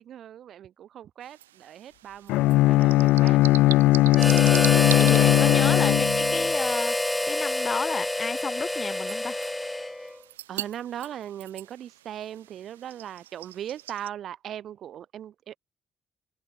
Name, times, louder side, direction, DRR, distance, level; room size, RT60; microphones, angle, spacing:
voice 1, 0.0-3.4 5.2-5.6 10.5-15.6, right 10 dB, 60° right, 4.3 m, -39 dB
sound 1, 1.2-14.1, right 13 dB, 85° right, 2.6 m, -42 dB
Bowed string instrument, 2.3-6.5, left 18 dB, 70° left, 1.1 m, -19 dB
Harmonica, 4.1-10.2, left 1 dB, 10° left, 1.5 m, -27 dB
voice 2, 4.2-7.0 7.3-9.4, left 5 dB, 40° left, 4.5 m, -33 dB
hypercardioid pair, 45°, 0 cm